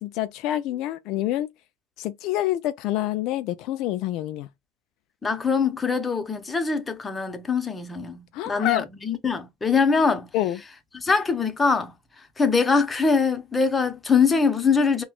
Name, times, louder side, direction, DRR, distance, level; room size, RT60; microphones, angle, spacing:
voice 1, 0.0-1.5 2.0-4.5 8.3-8.8 10.3-10.6, left 14 dB, 60° left, 0.3 m, -27 dB
voice 2, 5.2-10.3 10.9-11.9 12.4-15.0, left 5 dB, 20° left, 0.8 m, -23 dB
4.2 x 2.2 x 2.3 m
supercardioid pair, 105°, 0 cm